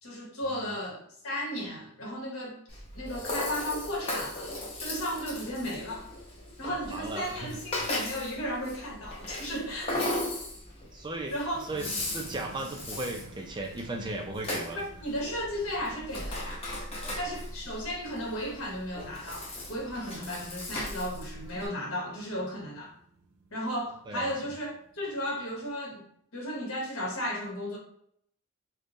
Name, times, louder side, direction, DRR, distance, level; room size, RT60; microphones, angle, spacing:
voice 1, 0.0-4.5 4.8-6.1 6.6-10.1 11.3-11.7 14.7-16.6 17.1-22.9 23.5-27.8, equal, 75° left, 1.2 m, -35 dB
Rattle (instrument), 2.7-21.7, left 1 dB, 25° left, 0.8 m, -37 dB
voice 2, 6.7-7.5 7.8-7.9 10.9-11.3 11.6-14.8 17.0-17.3 24.1-24.3, right 2 dB, 20° right, 0.4 m, -37 dB
sound 1, 11.7-25.7, right 3 dB, 80° right, 0.5 m, -54 dB
3.6 x 2.1 x 3.8 m
head